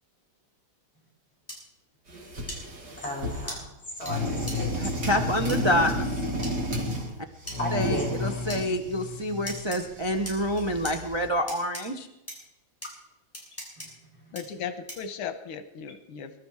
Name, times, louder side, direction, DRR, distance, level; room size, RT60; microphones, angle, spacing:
sound 1, 1.5-1.6 2.5-2.6 3.5-3.6 4.1-4.2 4.5-4.6 5.5-5.6 6.4-6.5 7.5-7.6 8.5-8.6 9.5-9.8 10.2-10.9 11.5-11.8 12.3-12.4 12.8-12.9 13.3-13.9 14.3-14.4 14.9-15.1, equal, 5° left, 6.3 m, -37 dB
sound 2, 2.1-3.6 4.0-7.1 7.4-11.3, left 1 dB, 55° right, 3.3 m, -32 dB
voice 1, 3.0-3.7 4.0-4.9 7.6-8.1 13.8-13.9 14.3-14.4, equal, 30° left, -3 dB, 5.9 m, -34 dB
voice 2, 4.8-5.9 7.7-12.1, equal, 35° right, 3 dB, 0.4 m, -27 dB
voice 3, 14.3-16.3, left 7 dB, 90° left, 10 dB, 1.9 m, -36 dB
23.5 x 12.5 x 4.7 m, 0.92 s
omnidirectional pair, 2.3 m